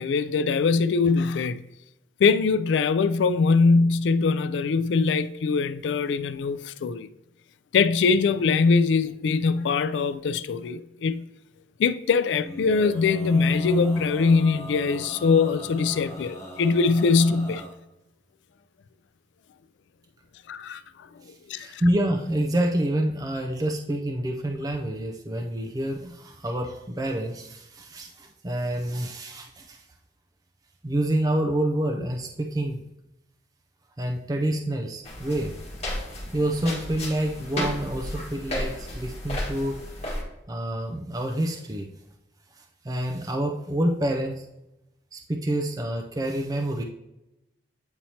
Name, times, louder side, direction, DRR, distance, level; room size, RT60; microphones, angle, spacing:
voice 1, 0.0-1.6 2.2-7.1 7.7-11.2 11.8-17.6 20.5-20.8 21.5-21.8, left 4 dB, 85° left, 0.3 m, -22 dB
Male singing, 12.4-17.7, equal, 15° left, 2.0 m, -40 dB
voice 2, 21.2-29.8 30.8-32.8 34.0-35.5 36.3-39.8 40.5-41.9 42.6-44.5 45.1-46.8, right 1 dB, 20° right, 0.4 m, -28 dB
sound 1, 35.0-40.2, left 1 dB, 35° left, 1.6 m, -33 dB
8.7 x 4.3 x 2.8 m
head